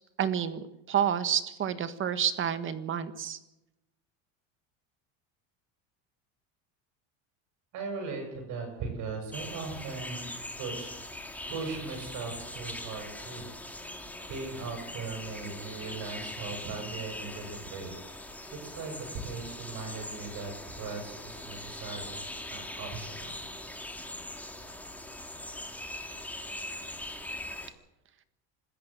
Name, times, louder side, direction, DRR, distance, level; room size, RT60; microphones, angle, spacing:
voice 1, 0.2-3.4, right 9 dB, 30° right, 11 dB, 1.6 m, -29 dB
voice 2, 7.7-10.3 10.6-11.0 11.5-13.5 13.8-14.0 14.3-17.9 18.6-23.3, right 4 dB, 50° right, 3 dB, 7.9 m, -39 dB
sound 1, 9.3-27.7, left 1 dB, 5° left, 2.1 m, -41 dB
26.0 x 13.5 x 7.8 m, 0.92 s
cardioid pair, 145°, 38 cm